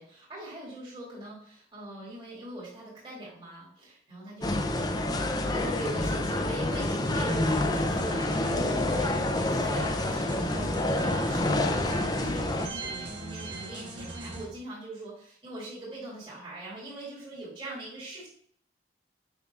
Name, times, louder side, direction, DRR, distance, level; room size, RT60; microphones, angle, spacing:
voice 1, 0.0-9.2 9.5-18.3, right 1 dB, 30° right, -7 dB, 2.6 m, -42 dB
sound 1, 4.4-12.7, left 1 dB, 20° left, 0.5 m, -28 dB
sound 2, 7.0-14.4, right 2 dB, 90° right, 1.6 m, -40 dB
7.0 x 5.6 x 2.4 m, 0.62 s
head